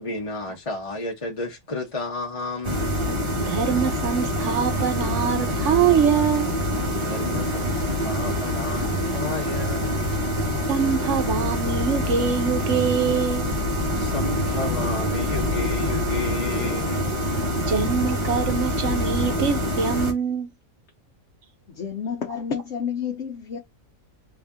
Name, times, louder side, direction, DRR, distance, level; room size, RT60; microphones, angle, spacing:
voice 1, 0.0-3.0 7.0-10.0 14.0-17.1 17.7-17.9, left 3 dB, 25° left, 0.9 m, -32 dB
sound 1, 2.6-20.1, equal, 25° right, 0.9 m, -25 dB
voice 2, 3.4-6.5 10.7-13.5 17.6-20.5, right 7 dB, 60° right, 1.2 m, -24 dB
voice 3, 21.7-23.6, left 7 dB, 60° left, 1.0 m, -30 dB
3.5 x 2.7 x 3.5 m
omnidirectional pair, 1.5 m